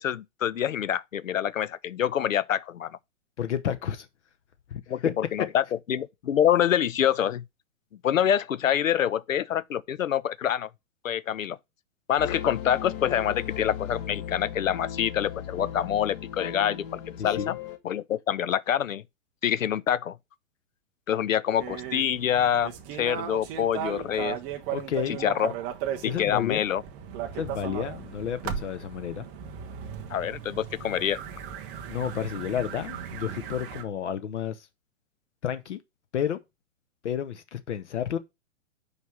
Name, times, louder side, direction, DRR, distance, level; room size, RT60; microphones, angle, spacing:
voice 1, 0.0-3.0 4.9-7.4 8.0-10.7 11.0-11.6 12.1-17.6 17.8-19.0 19.4-20.2 21.1-24.4 25.2-25.5 26.0-26.8 30.1-31.2, left 10 dB, 90° left, 0.5 m, -26 dB
voice 2, 3.4-4.1 4.7-5.1 17.2-17.5 24.7-25.2 26.0-26.6 27.3-29.3 31.9-34.7 35.4-35.8 36.1-36.4 37.0-38.2, left 9 dB, 65° left, 0.9 m, -31 dB
sound 1, 12.2-17.8, left 9 dB, 45° left, 1.3 m, -37 dB
sound 2, 21.6-33.8, right 9 dB, 10° right, 0.3 m, -36 dB
5.2 x 4.8 x 6.1 m
hypercardioid pair, 120°, 38 cm